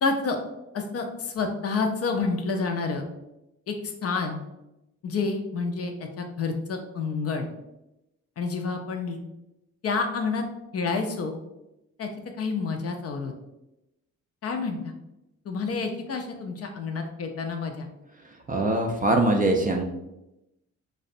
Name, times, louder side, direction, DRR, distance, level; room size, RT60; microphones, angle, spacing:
voice 1, 0.0-0.4 0.7-3.1 3.7-4.4 5.0-7.5 8.4-9.2 9.8-10.4 10.7-11.4 12.0-12.1 12.4-13.3 14.4-14.9 15.5-17.9, left 4 dB, 45° left, 4 dB, 0.4 m, -29 dB
voice 2, 18.5-19.8, right 2 dB, 25° right, 3 dB, 0.4 m, -22 dB
2.6 x 2.0 x 2.5 m, 0.91 s
hypercardioid pair, 45°, 36 cm